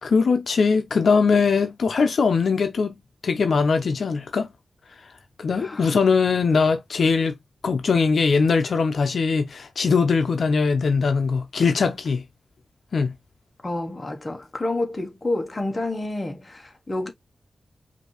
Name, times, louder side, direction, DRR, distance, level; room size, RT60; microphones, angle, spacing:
voice 1, 0.0-2.9 3.2-4.5 5.4-7.4 7.6-12.2 12.9-13.1, left 5 dB, 70° left, 0.7 m, -21 dB
voice 2, 5.5-5.9 13.6-17.1, left 2 dB, 25° left, 1.2 m, -29 dB
5.1 x 2.7 x 3.0 m
wide cardioid pair, 105°, 0 cm